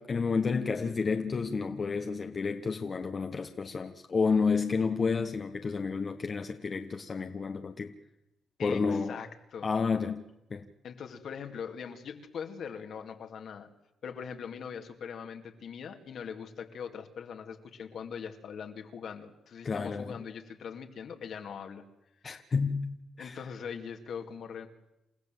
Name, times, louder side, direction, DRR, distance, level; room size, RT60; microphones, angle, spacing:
voice 1, 0.0-7.9 8.6-9.2 9.6-10.2 10.5-10.6 19.6-20.1 22.2-23.4, left 5 dB, 40° left, 1.3 m, -30 dB
voice 2, 8.6-9.7 10.8-13.7 14.0-21.8 23.2-24.7, left 7 dB, 70° left, 2.5 m, -41 dB
29.0 x 15.0 x 7.8 m
cardioid pair, 75°, 0 cm